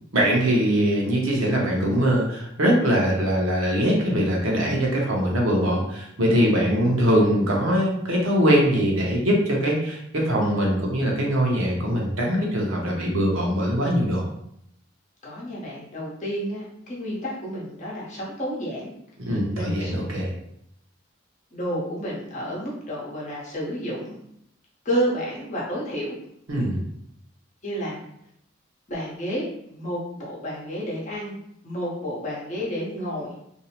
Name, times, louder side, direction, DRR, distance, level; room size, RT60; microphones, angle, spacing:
voice 1, 0.1-14.2 19.3-20.3 26.5-26.8, equal, 85° right, -2 dB, 0.7 m, -22 dB
voice 2, 15.2-18.9 19.5-19.9 21.5-24.2 24.8-26.2 27.6-28.0 28.9-31.4 31.6-33.3, equal, 35° left, -6 dB, 0.9 m, -30 dB
2.6 x 2.0 x 2.8 m, 0.74 s
head